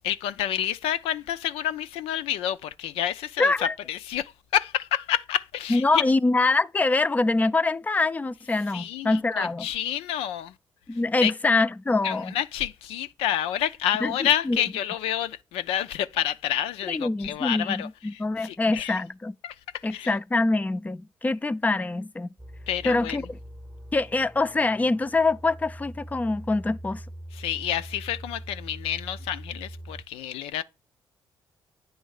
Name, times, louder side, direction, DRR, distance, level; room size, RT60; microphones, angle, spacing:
voice 1, 0.0-3.5 3.9-6.0 8.7-10.5 11.2-11.3 12.0-19.0 19.4-19.5 19.9-20.1 22.7-23.2 27.3-30.6, left 11 dB, 85° left, 0.4 m, -29 dB
voice 2, 3.4-3.7 5.7-9.7 10.9-12.3 14.0-14.6 16.9-19.3 19.8-22.3 22.8-23.3 23.9-27.0, left 3 dB, 15° left, 0.4 m, -24 dB
sound 1, 22.4-30.0, right 1 dB, 5° right, 0.8 m, -42 dB
9.0 x 3.1 x 6.3 m
supercardioid pair, 60°, 10 cm